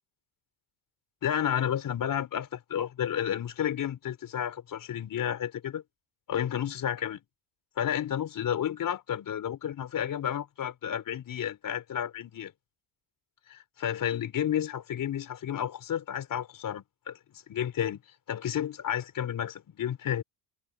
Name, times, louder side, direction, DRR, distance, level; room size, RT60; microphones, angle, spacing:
voice 1, 1.2-5.8 6.3-7.2 7.8-12.5 13.5-18.0 18.3-20.2, left 9 dB, 40° left, 4.3 m, -31 dB
cardioid pair, 130°, 50 cm